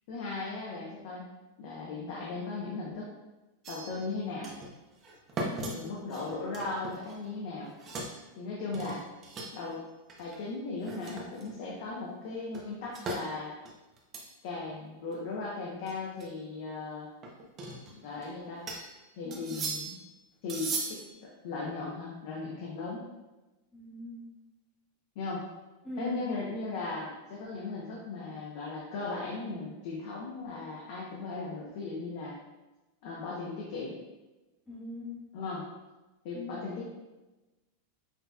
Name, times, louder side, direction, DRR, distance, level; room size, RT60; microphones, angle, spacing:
voice 1, 0.1-1.3 1.6-3.1 3.7-4.5 5.7-7.7 8.4-9.0 9.5-9.8 10.2-13.6 14.4-17.1 17.9-18.6 19.2-19.9 20.4-21.0 21.4-23.0 25.2-25.4 26.0-32.4 33.0-34.0 35.3-35.6 36.2-36.9, left 3 dB, 55° left, -4 dB, 0.8 m, -37 dB
sound 1, 3.6-4.1 4.4-4.7 5.0-7.4 7.7-8.2 8.7-9.7 10.1-10.4 10.8-11.7 12.5-13.2 13.6-14.3 14.7-14.8 15.1-15.2 15.9-16.2 17.2-18.3 18.7-18.9 19.3-20.1 20.5-21.1, right 2 dB, 25° right, 0.7 m, -38 dB
voice 2, 5.4-5.9 19.2-19.6 23.7-24.2 25.8-26.2 34.7-35.2 36.3-36.5, left 2 dB, 5° left, -11 dB, 1.1 m, -41 dB
5.8 x 2.8 x 2.3 m, 1.1 s
supercardioid pair, 165°, 0 cm